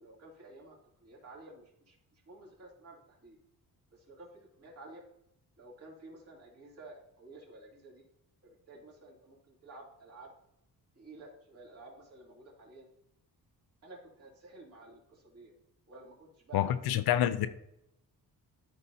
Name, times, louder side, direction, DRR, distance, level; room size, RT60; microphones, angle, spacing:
voice 1, 0.0-2.0 2.3-3.4 3.9-4.3 4.6-5.0 5.6-8.0 8.4-10.3 10.9-12.9 13.8-15.5 15.9-17.0, right 2 dB, 40° right, 3.0 m, -52 dB
voice 2, 16.5-17.5, left 11 dB, 80° left, 0.7 m, -27 dB
13.0 x 5.4 x 2.8 m
cardioid pair, 165°, 36 cm